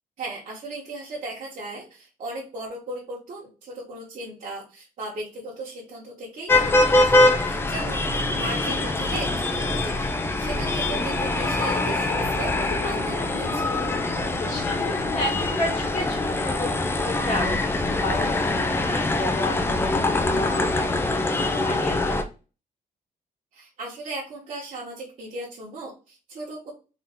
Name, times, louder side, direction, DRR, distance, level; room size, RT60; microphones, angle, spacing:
voice 1, 0.2-10.1 10.4-13.8 23.5-26.7, right 2 dB, 50° right, -6 dB, 1.2 m, -37 dB
sound 1, 6.5-22.2, left 2 dB, 15° left, 0.5 m, -23 dB
voice 2, 7.5-7.8 14.4-22.2, left 1 dB, 55° left, -2 dB, 2.0 m, -33 dB
sound 2, 10.5-15.6, left 2 dB, 90° left, 1.9 m, -35 dB
3.8 x 2.8 x 3.6 m, 0.33 s
cardioid pair, 155°, 15 cm